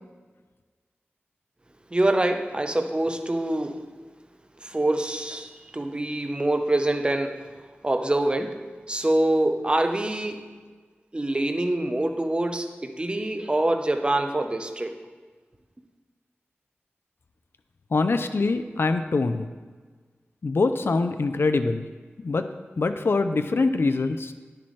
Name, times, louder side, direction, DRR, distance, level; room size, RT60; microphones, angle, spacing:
voice 1, 1.9-3.9 4.6-7.5 7.8-10.4 11.1-15.0, right 1 dB, 25° right, 5 dB, 0.7 m, -25 dB
voice 2, 17.9-19.5 20.4-21.9 22.2-22.5 22.8-24.3, left 3 dB, 65° left, 9 dB, 0.5 m, -24 dB
10.0 x 10.0 x 3.2 m, 1.4 s
wide cardioid pair, 85°, 4 cm